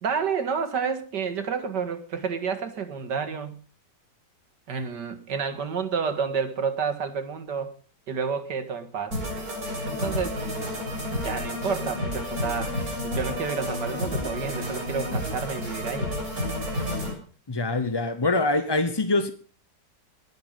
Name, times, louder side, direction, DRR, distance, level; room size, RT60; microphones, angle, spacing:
voice 1, 0.0-3.6 4.7-7.7 8.1-9.2 9.9-10.4 11.2-16.1, right 6 dB, 70° right, 2.4 m, -30 dB
sound 1, 9.1-17.1, left 1 dB, 55° right, 7.3 m, -30 dB
voice 2, 17.5-19.3, left 2 dB, 25° left, 0.6 m, -24 dB
20.0 x 10.5 x 5.4 m
omnidirectional pair, 2.0 m